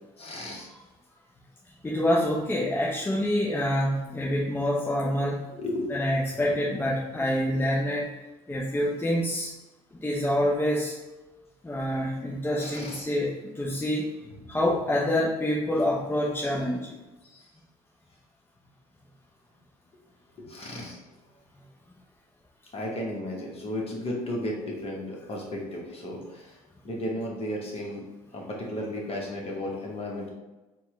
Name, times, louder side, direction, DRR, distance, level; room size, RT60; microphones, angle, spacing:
voice 1, 0.2-0.7 5.5-5.9 12.6-13.0 14.2-14.3 17.2-17.5 20.4-21.0 22.7-26.6 26.8-28.1 28.3-30.3, left 1 dB, 30° left, -2 dB, 1.2 m, -34 dB
voice 2, 1.8-5.4 5.9-8.1 8.5-9.5 9.9-10.9 11.6-14.1 14.5-17.0, left 1 dB, 10° left, -4 dB, 0.6 m, -26 dB
4.3 x 2.3 x 3.1 m, 1.1 s
hypercardioid pair, 65°, 19 cm